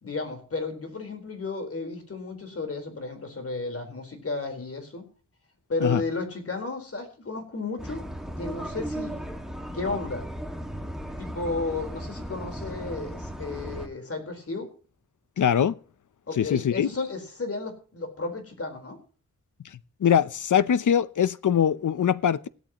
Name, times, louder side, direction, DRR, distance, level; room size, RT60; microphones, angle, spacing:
voice 1, 0.0-5.1 5.7-8.0 8.4-9.2 9.7-10.3 11.2-14.7 16.3-19.0, left 3 dB, 50° left, 4.4 m, -33 dB
sound 1, 7.8-13.9, equal, ahead, 2.0 m, -36 dB
voice 2, 15.4-15.7 16.4-16.9 20.0-22.5, left 8 dB, 80° left, 0.8 m, -22 dB
16.5 x 13.0 x 3.1 m
wide cardioid pair, 120°, 30 cm